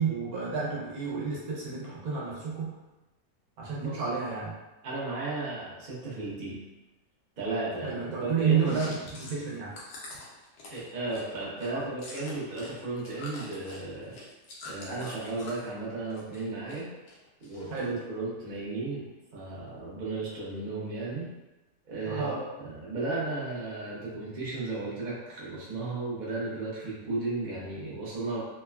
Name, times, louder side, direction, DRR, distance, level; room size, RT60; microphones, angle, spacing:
voice 1, 0.0-2.7 3.6-4.5 7.8-9.7 11.7-11.8 17.7-18.0 22.0-22.4, right 6 dB, 70° right, -5 dB, 1.1 m, -30 dB
voice 2, 4.8-6.6 7.4-8.8 10.7-14.2 14.6-16.9 17.4-21.3 21.9-28.4, right 3 dB, 45° right, -7 dB, 0.6 m, -34 dB
Chewing mastication, 8.6-12.7 13.0-15.7 16.1-16.8 17.1-18.0, left 2 dB, 80° left, 1.2 m, -45 dB
3.2 x 2.1 x 2.2 m, 1.0 s
omnidirectional pair, 1.7 m